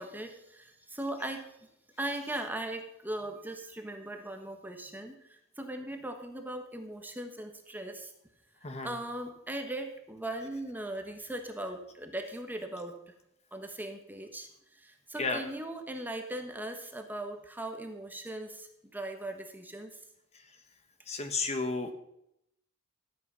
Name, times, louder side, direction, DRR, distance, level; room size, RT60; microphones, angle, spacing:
voice 1, 0.0-1.6 2.0-8.1 8.8-13.1 13.5-19.9, right 1 dB, 10° right, 5 dB, 1.2 m, -39 dB
voice 2, 8.6-8.9 15.2-15.4 20.3-20.4 21.1-21.9, left 3 dB, 35° left, 6 dB, 1.2 m, -32 dB
13.5 x 8.5 x 5.4 m, 0.79 s
head